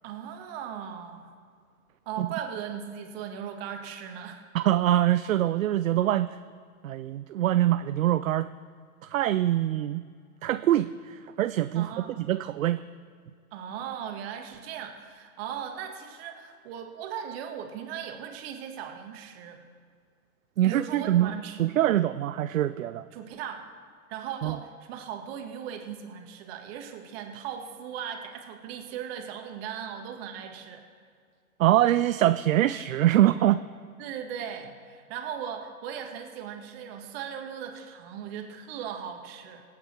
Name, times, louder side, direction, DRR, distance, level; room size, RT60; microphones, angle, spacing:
voice 1, 0.0-1.3 2.1-4.4 11.7-12.2 13.5-19.6 20.6-21.6 23.1-23.6 24.1-30.8 34.0-39.6, right 8 dB, 45° right, 4 dB, 1.8 m, -38 dB
voice 2, 4.5-6.4 6.8-8.5 9.0-10.0 10.4-11.9 12.2-12.8 20.6-21.3 21.6-23.1 24.4-24.6 31.6-33.6, right 13 dB, 65° right, 13 dB, 0.5 m, -24 dB
25.5 x 8.5 x 4.5 m, 2.1 s
figure-of-eight pair, 105°, 44 cm